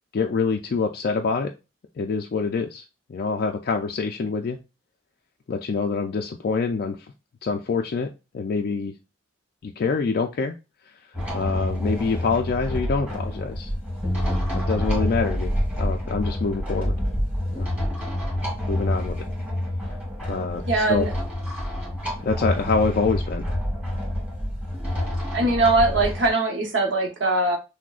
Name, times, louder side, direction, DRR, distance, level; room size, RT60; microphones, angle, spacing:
voice 1, 0.1-1.5 2.0-2.8 3.1-4.6 5.5-7.0 7.4-8.1 8.3-8.9 9.6-10.5 11.3-13.7 14.5-15.5 15.8-17.0 17.5-17.7 18.7-19.2 20.3-21.1 22.2-23.5, left 4 dB, 55° left, 0.3 m, -25 dB
sound 1, 11.1-26.3, left 1 dB, 10° right, 1.7 m, -27 dB
voice 2, 20.7-21.1 25.3-27.6, right 2 dB, 70° right, 0.9 m, -21 dB
6.0 x 2.1 x 2.4 m
head